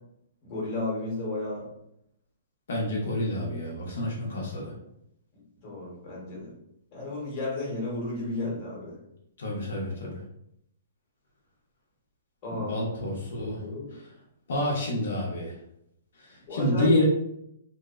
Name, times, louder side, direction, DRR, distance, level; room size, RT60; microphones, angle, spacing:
voice 1, 0.4-1.7 5.6-6.5 6.9-9.0 12.4-12.7 13.6-13.9 16.5-16.9, left 2 dB, 30° left, -5 dB, 1.0 m, -33 dB
voice 2, 2.7-4.7 9.4-10.2 12.5-13.6 14.5-15.5 16.3-17.0, left 1 dB, 70° left, -3 dB, 0.7 m, -28 dB
2.6 x 2.0 x 2.4 m, 0.78 s
hypercardioid pair, 160°, 0 cm